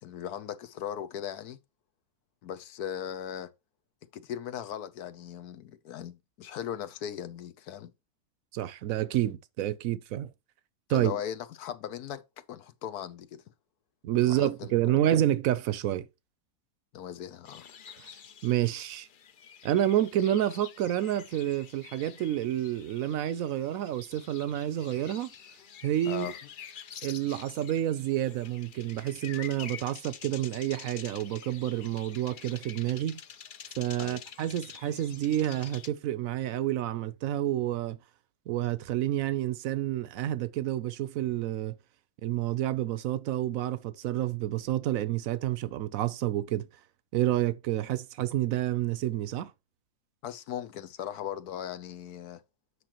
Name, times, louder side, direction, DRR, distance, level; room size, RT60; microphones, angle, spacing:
voice 1, 0.0-1.6 2.4-3.5 4.1-7.9 10.9-12.2 12.5-13.4 14.2-15.0 16.9-17.7 26.1-26.3 34.0-34.2 50.2-52.4, left 9 dB, 80° left, 1.3 m, -38 dB
voice 2, 8.5-10.3 10.9-11.1 14.0-16.0 18.0-18.1 18.4-19.1 19.6-25.3 25.8-26.3 27.0-33.2 33.8-38.0 38.5-41.8 42.2-46.7 47.1-49.5, right 12 dB, 70° right, 0.9 m, -29 dB
sound 1, 17.5-35.9, left 8 dB, 60° left, 0.5 m, -47 dB
8.1 x 5.9 x 3.0 m
omnidirectional pair, 1.6 m